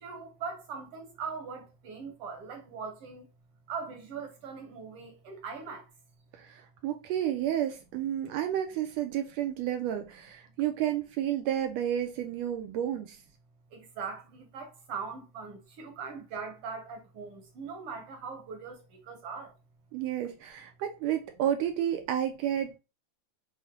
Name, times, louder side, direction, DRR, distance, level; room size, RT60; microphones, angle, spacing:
voice 1, 0.0-3.2 3.7-5.8 13.7-18.8 19.1-19.5, right 5 dB, 65° right, 1.5 m, -40 dB
voice 2, 6.3-13.2 19.9-22.8, right 11 dB, 80° right, 1.5 m, -31 dB
6.2 x 2.1 x 3.6 m
omnidirectional pair, 3.5 m